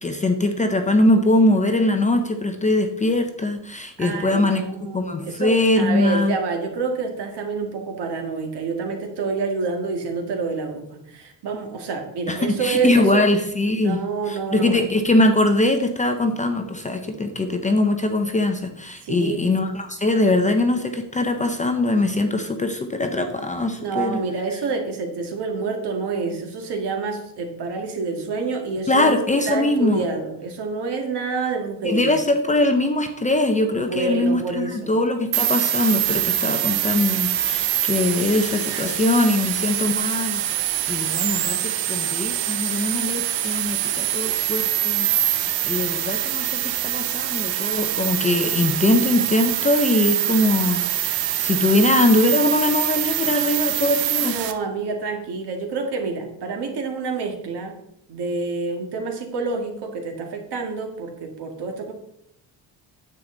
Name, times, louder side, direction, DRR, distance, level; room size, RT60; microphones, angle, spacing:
voice 1, 0.0-4.6 4.9-6.4 12.3-14.0 14.3-24.2 28.9-30.1 31.8-45.1 45.6-54.4, left 2 dB, 15° left, 5 dB, 0.6 m, -21 dB
voice 2, 4.0-13.2 13.8-14.8 19.0-19.4 23.8-29.2 29.5-32.1 33.8-34.9 54.2-57.8 58.1-61.9, right 4 dB, 65° right, 3 dB, 1.9 m, -28 dB
sound 1, 35.3-54.5, right 12 dB, 90° right, 0.9 m, -24 dB
9.5 x 7.7 x 3.8 m, 0.76 s
cardioid pair, 165°, 44 cm